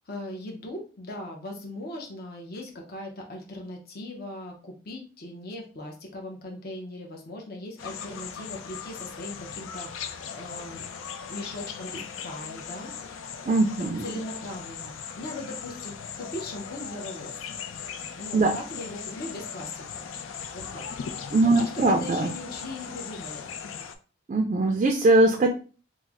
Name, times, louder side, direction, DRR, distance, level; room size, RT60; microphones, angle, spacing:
voice 1, 0.1-10.9 11.3-13.5 14.0-17.5 18.2-20.1 20.5-20.9 21.5-23.7, left 1 dB, 50° left, 1 dB, 0.7 m, -39 dB
sound 1, 7.8-23.9, left 7 dB, 90° left, 0.4 m, -38 dB
voice 2, 13.5-14.1 18.3-18.6 21.3-22.3 24.3-25.5, right 2 dB, 35° right, 3 dB, 0.3 m, -21 dB
3.1 x 2.0 x 3.5 m, 0.36 s
head